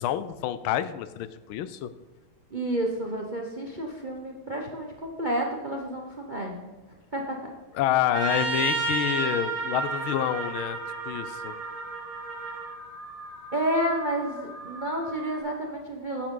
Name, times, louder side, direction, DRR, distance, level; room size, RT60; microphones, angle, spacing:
voice 1, 0.0-1.9 7.8-10.8 11.0-11.5, left 11 dB, 80° left, 13 dB, 1.4 m, -28 dB
voice 2, 2.5-6.7 7.1-7.5 13.5-16.3, right 1 dB, 35° right, 1 dB, 0.7 m, -30 dB
Trumpet, 8.1-12.7, right 4 dB, 80° right, 3.1 m, -31 dB
Alarm, 9.8-15.4, right 1 dB, 45° left, 1.9 m, -42 dB
9.9 x 9.2 x 3.8 m, 1.2 s
omnidirectional pair, 2.3 m